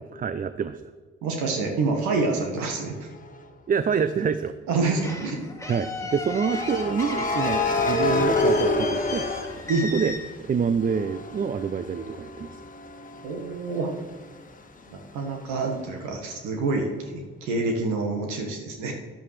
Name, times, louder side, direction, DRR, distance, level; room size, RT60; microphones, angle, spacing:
voice 1, 0.1-0.8 3.7-4.5 5.7-9.3 9.8-10.1 10.4-12.6, right 6 dB, 25° right, 12 dB, 0.6 m, -26 dB
voice 2, 1.2-3.1 4.7-5.4 9.7-9.9 13.2-13.9 14.9-18.9, right 3 dB, 65° right, 2 dB, 1.5 m, -27 dB
sound 1, 3.1-3.4 6.4-10.3 10.7-14.3, left 2 dB, 25° left, 1.6 m, -27 dB
sound 2, 5.0-10.2, left 3 dB, 10° left, 1.9 m, -36 dB
14.0 x 10.5 x 3.3 m, 1.4 s
figure-of-eight pair, 45°, 31 cm